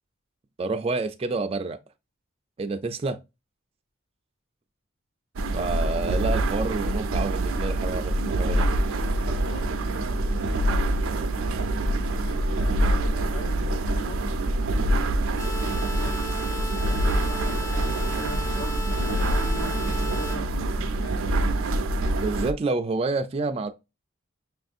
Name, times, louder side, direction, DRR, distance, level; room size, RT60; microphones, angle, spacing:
voice 1, 0.6-1.8 2.6-3.2 5.5-8.7 22.1-23.7, right 3 dB, 30° right, 0.3 m, -28 dB
sound 1, 5.4-22.5, right 1 dB, 85° right, 0.5 m, -25 dB
voice 2, 9.3-11.0 11.2-11.4 11.8-14.2 15.9-16.4 16.8-21.6, left 1 dB, 80° left, 1.2 m, -41 dB
sound 2, 15.4-20.4, left 1 dB, 15° left, 0.6 m, -36 dB
5.9 x 2.6 x 2.4 m
head